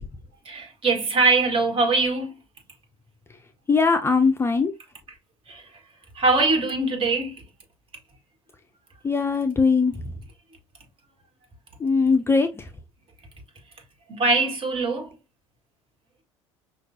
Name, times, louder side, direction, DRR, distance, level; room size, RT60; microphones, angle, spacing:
voice 1, 0.5-2.3 5.5-5.7 6.2-7.4 14.1-15.1, right 3 dB, 35° right, 1.8 m, -22 dB
voice 2, 3.7-4.7 9.0-10.0 11.8-12.7, left 4 dB, 15° left, 0.5 m, -20 dB
5.8 x 2.5 x 2.7 m
figure-of-eight pair, 65°, 16 cm